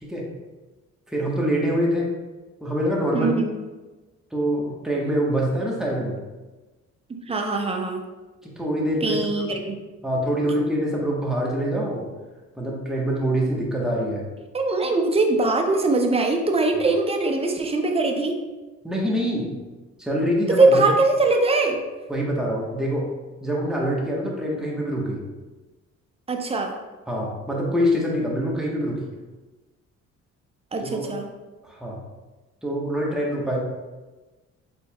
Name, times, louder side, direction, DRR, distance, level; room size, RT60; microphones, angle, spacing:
voice 1, 0.0-0.3 1.1-2.1 2.6-3.3 4.3-6.2 8.4-9.5 10.0-12.1 12.5-14.3 18.8-19.5 20.0-20.9 22.1-23.1 23.4-25.2 27.1-29.1 30.8-31.1 31.6-32.0 32.6-33.6, equal, ahead, -3 dB, 1.0 m, -25 dB
voice 2, 3.1-3.5 7.3-8.0 9.0-9.8 14.5-18.3 20.5-21.8 26.3-26.7 30.7-31.3, right 3 dB, 20° right, 3 dB, 0.6 m, -21 dB
4.4 x 4.0 x 2.2 m, 1.2 s
cardioid pair, 90°, 30 cm